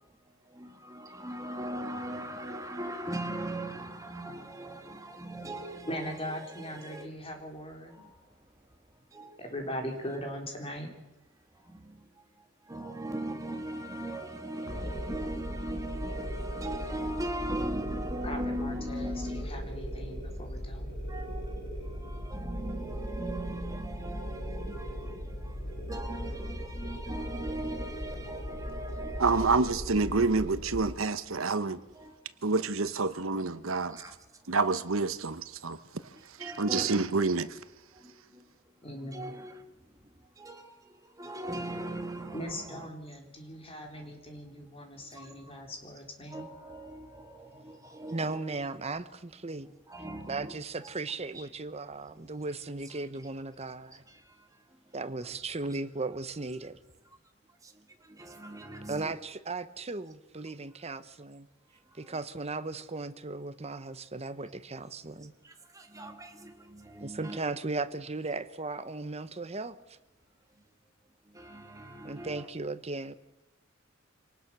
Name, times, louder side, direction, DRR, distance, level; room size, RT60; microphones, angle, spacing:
voice 1, 0.6-5.9 6.8-7.1 8.0-8.1 9.1-9.3 11.7-11.9 12.7-19.4 21.1-21.4 22.0-25.4 25.9-29.5 32.0-32.1 33.9-34.1 36.4-36.9 38.0-38.1 38.9-39.6 40.4-40.7 41.2-42.8 45.2-45.3 46.3-48.4 49.9-50.5 58.2-59.1 65.9-67.4 71.4-72.4, right 1 dB, 15° right, 2.0 m, -39 dB
voice 2, 5.8-8.1 9.4-10.9 18.2-20.9 38.8-39.4 42.3-46.4, equal, 30° left, 3.9 m, -40 dB
sound 1, 14.7-30.9, equal, 60° left, 7.1 m, -38 dB
voice 3, 29.2-31.8 32.4-34.0 34.5-35.8 36.4-37.6, right 4 dB, 85° right, 1.1 m, -28 dB
voice 4, 48.1-49.7 50.3-54.0 54.9-56.8 58.9-61.5 61.9-65.3 67.0-70.0 72.0-73.1, right 3 dB, 30° right, 1.0 m, -36 dB
26.0 x 19.0 x 6.2 m
head